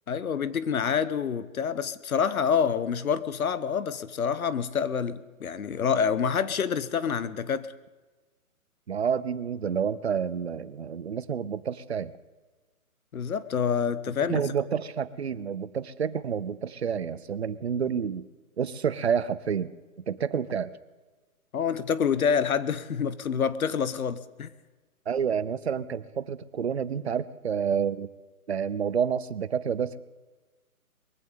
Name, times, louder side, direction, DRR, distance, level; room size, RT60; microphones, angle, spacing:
voice 1, 0.1-7.7 13.1-14.4 21.5-24.5, left 7 dB, 70° left, 16 dB, 1.0 m, -27 dB
voice 2, 8.9-12.1 14.3-18.3 18.6-19.7 20.1-20.7 25.1-28.1 28.5-30.0, right 7 dB, 50° right, 17 dB, 0.6 m, -29 dB
22.0 x 15.5 x 3.8 m, 1.2 s
hypercardioid pair, 170°, 44 cm